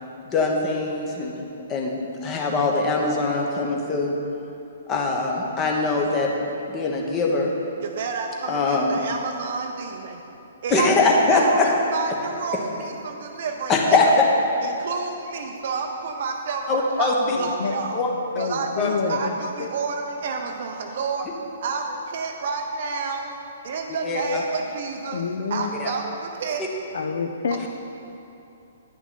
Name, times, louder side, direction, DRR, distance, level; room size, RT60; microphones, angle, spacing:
voice 1, 0.2-1.4 1.7-4.1 4.9-7.5 8.5-9.0 10.7-11.7 13.7-14.2 16.7-17.4 17.9-18.1 18.8-18.9 24.0-24.4 25.8-25.9 27.6-27.7, left 3 dB, 20° left, -1 dB, 1.1 m, -22 dB
voice 2, 7.8-10.2 10.6-14.2 14.6-18.0 18.4-21.3 21.6-23.3 23.6-25.2 25.5-26.6 27.5-27.6, right 5 dB, 50° right, 3 dB, 0.5 m, -30 dB
voice 3, 17.3-17.7 18.3-19.3 19.6-19.7 25.1-25.7 26.9-27.7, left 5 dB, 55° left, 6 dB, 0.6 m, -27 dB
10.0 x 6.0 x 4.1 m, 2.9 s
figure-of-eight pair, 120°, 0 cm